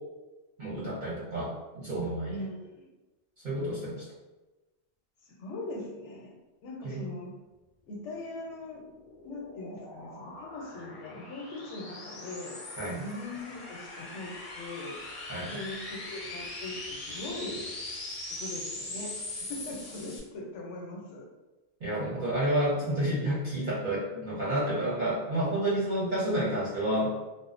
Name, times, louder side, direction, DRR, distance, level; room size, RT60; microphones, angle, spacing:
voice 1, 0.6-2.3 3.4-4.0 6.8-7.0 12.8-13.0 15.3-15.5 21.8-27.1, right 1 dB, 50° right, -8 dB, 0.7 m, -30 dB
voice 2, 2.3-2.9 5.2-6.3 6.6-7.3 7.9-8.8 9.2-12.6 13.0-15.0 15.5-17.7 18.3-21.3 22.8-23.1, left 2 dB, 90° left, 0 dB, 0.9 m, -41 dB
sound 1, 8.4-20.2, left 2 dB, 50° left, 0.6 m, -41 dB
2.5 x 2.0 x 2.4 m, 1.1 s
omnidirectional pair, 1.2 m